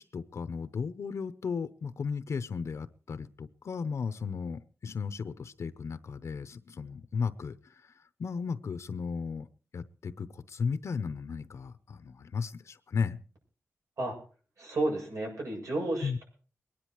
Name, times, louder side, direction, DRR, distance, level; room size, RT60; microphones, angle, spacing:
voice 1, 0.0-9.5 9.7-13.2 16.0-16.2, left 5 dB, 65° left, 12 dB, 0.7 m, -35 dB
voice 2, 14.6-16.2, right 2 dB, 85° right, 1 dB, 7.6 m, -32 dB
23.0 x 10.0 x 4.6 m, 0.40 s
wide cardioid pair, 180°, 5 cm